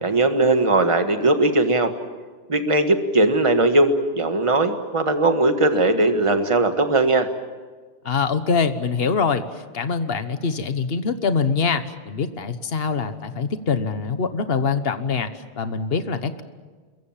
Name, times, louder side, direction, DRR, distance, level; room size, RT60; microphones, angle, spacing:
voice 1, 0.0-1.9 2.5-7.3, right 2 dB, 30° right, 7 dB, 1.7 m, -19 dB
voice 2, 8.0-15.3 15.6-16.4, left 5 dB, 60° left, 10 dB, 1.4 m, -24 dB
27.5 x 22.5 x 7.4 m, 1.4 s
omnidirectional pair, 1.1 m